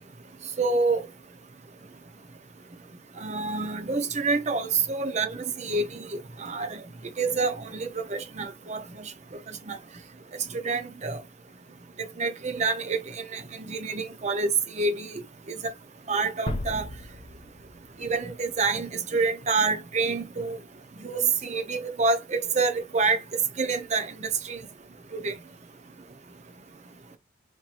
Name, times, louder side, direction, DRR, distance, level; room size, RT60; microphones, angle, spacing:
voice 1, 0.6-1.0 3.2-6.0 6.4-6.8 7.2-9.1 9.7-9.8 10.6-11.2 12.2-14.5 14.7-15.2 16.1-16.9 18.0-20.6 21.0-23.2 23.6-24.6 25.1-25.3, right 4 dB, 35° right, 0.6 m, -27 dB
sound 1, 16.5-19.3, left 1 dB, 30° left, 0.6 m, -37 dB
4.5 x 2.9 x 2.5 m
head